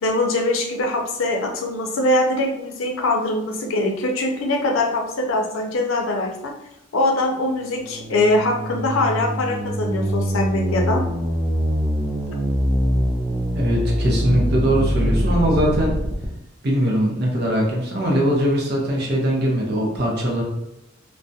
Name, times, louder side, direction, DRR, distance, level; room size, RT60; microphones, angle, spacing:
voice 1, 0.0-6.5 6.9-11.0, left 2 dB, 75° left, 2 dB, 0.5 m, -22 dB
sound 1, 7.5-16.3, equal, 5° right, 0.3 m, -24 dB
voice 2, 13.5-15.9 16.6-20.4, equal, 50° right, -1 dB, 0.6 m, -21 dB
2.3 x 2.0 x 2.6 m, 0.86 s
head